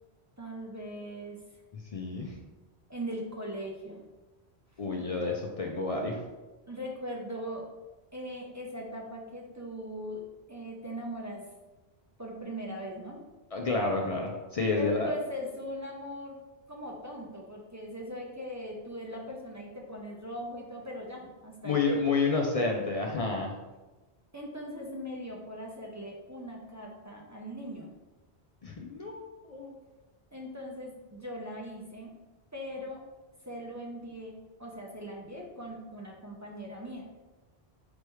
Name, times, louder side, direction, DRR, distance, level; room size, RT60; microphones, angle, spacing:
voice 1, 0.4-1.4 2.9-4.1 6.7-7.7 8.1-10.2 10.5-11.5 12.2-13.2 14.8-16.4 16.7-21.8 24.3-27.9 30.3-32.1 32.5-33.0 33.5-34.3 34.6-37.1, equal, 25° right, -1 dB, 0.3 m, -40 dB
voice 2, 1.9-2.3 4.8-6.2 13.5-15.1 21.6-23.5 28.6-29.7, left 3 dB, 55° left, 0 dB, 0.4 m, -30 dB
4.4 x 3.4 x 3.0 m, 1.1 s
omnidirectional pair, 1.1 m